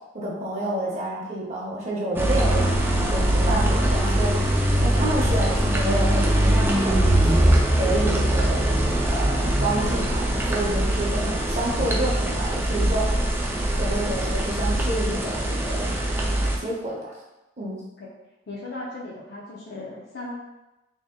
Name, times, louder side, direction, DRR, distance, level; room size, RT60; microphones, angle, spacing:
voice 1, 0.1-2.7 3.1-4.3 4.8-7.0 7.2-8.6 9.0-13.0 13.8-16.0 16.6-17.1 17.6-17.8, right 1 dB, 35° right, -4 dB, 0.7 m, -29 dB
sound 1, 2.2-16.6, right 1 dB, 10° right, 0.4 m, -22 dB
voice 2, 18.5-20.3, left 2 dB, 55° left, -5 dB, 0.5 m, -37 dB
3.1 x 2.8 x 3.6 m, 1.0 s
head